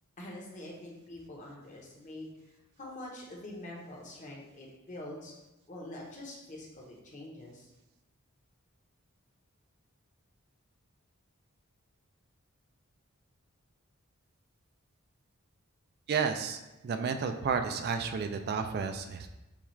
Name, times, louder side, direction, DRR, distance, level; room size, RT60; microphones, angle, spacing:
voice 1, 0.2-2.3 2.8-5.3 5.7-7.7, left 1 dB, 35° left, -2 dB, 0.9 m, -45 dB
voice 2, 16.1-19.3, right 6 dB, 50° right, 7 dB, 0.3 m, -32 dB
7.0 x 2.4 x 3.1 m, 1.0 s
head